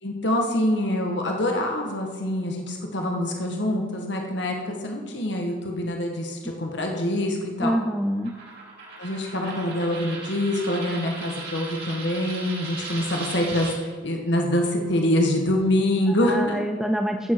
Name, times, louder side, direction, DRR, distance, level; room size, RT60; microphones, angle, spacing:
voice 1, 0.0-7.7 9.0-16.6, left 1 dB, 65° left, 1 dB, 1.6 m, -25 dB
voice 2, 7.6-8.3 16.1-17.3, equal, ahead, 4 dB, 0.4 m, -26 dB
Coin (dropping), 8.2-13.8, right 3 dB, 55° right, 3.8 m, -37 dB
14.5 x 8.3 x 4.7 m, 1.4 s
head